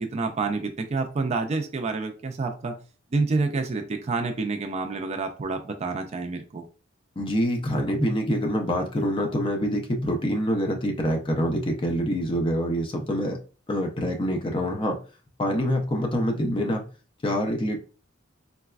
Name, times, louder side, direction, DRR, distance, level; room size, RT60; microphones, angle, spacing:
voice 1, 0.0-2.8 3.1-6.6, right 3 dB, 35° right, 4 dB, 0.4 m, -28 dB
voice 2, 7.2-13.4 13.7-15.0 15.4-16.8 17.2-17.8, equal, 25° left, 3 dB, 0.5 m, -25 dB
4.0 x 2.2 x 2.3 m, 0.36 s
head